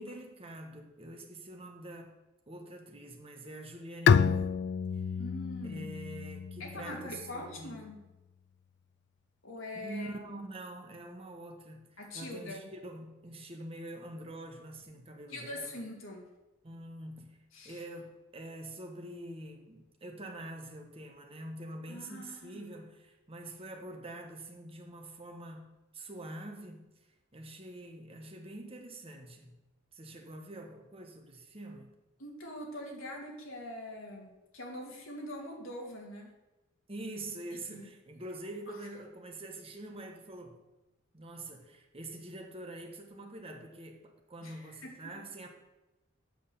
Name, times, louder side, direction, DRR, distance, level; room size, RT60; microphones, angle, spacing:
voice 1, 0.0-2.1 2.5-4.6 4.9-5.0 5.6-7.8 9.7-11.9 12.1-15.7 16.6-17.4 17.6-26.9 27.3-29.6 29.9-31.9 36.9-40.6 41.1-45.5, right 1 dB, 30° right, 2 dB, 1.4 m, -45 dB
Bowed string instrument, 4.1-7.6, left 6 dB, 55° left, 0.3 m, -29 dB
voice 2, 5.2-5.9 6.6-8.0 9.4-10.1 12.0-12.7 15.3-16.3 17.5-17.8 21.9-22.6 32.2-36.3 37.7-37.9 44.4-45.1, left 1 dB, 75° left, 0 dB, 2.4 m, -43 dB
7.9 x 6.4 x 6.9 m, 1.0 s
head